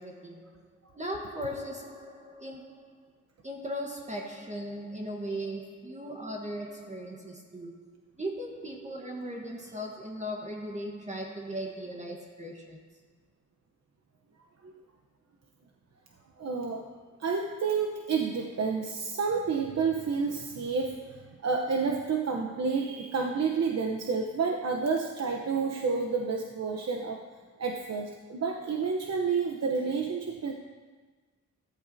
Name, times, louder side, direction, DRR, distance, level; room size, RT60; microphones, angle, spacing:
voice 1, 0.0-3.1 3.4-13.0, equal, 25° right, 1.4 m, -38 dB
voice 2, 16.4-16.9 17.2-27.2 27.6-30.5, right 5 dB, 55° right, 1.0 m, -30 dB
15.0 x 13.5 x 2.8 m
cardioid pair, 85°, 30 cm